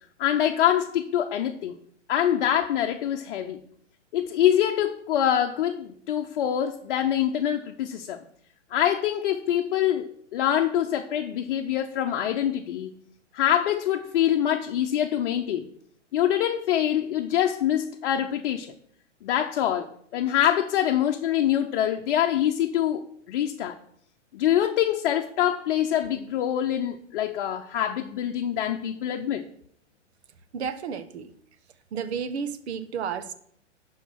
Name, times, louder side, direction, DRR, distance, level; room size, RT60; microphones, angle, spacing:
voice 1, 0.2-1.8 2.1-3.6 4.1-8.2 8.7-13.0 13.3-15.7 16.1-18.7 19.2-23.8 24.3-29.4, left 10 dB, 50° left, 0.8 m, -25 dB
voice 2, 30.5-31.3 31.9-33.3, right 6 dB, 60° right, 1.1 m, -32 dB
11.5 x 4.7 x 6.1 m
hypercardioid pair, 120°, 36 cm